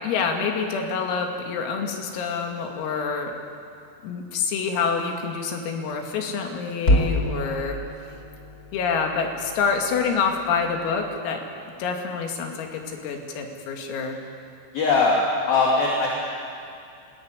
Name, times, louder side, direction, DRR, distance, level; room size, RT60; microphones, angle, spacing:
voice 1, 0.0-3.4 4.0-7.8 8.7-11.4 11.8-14.2, left 5 dB, 85° left, 3 dB, 5.0 m, -27 dB
sound 1, 6.8-11.2, left 1 dB, 30° left, 1.6 m, -28 dB
voice 2, 14.7-15.2 15.5-16.1, left 4 dB, 50° left, -2 dB, 4.1 m, -20 dB
26.5 x 20.0 x 9.7 m, 2.5 s
omnidirectional pair, 5.9 m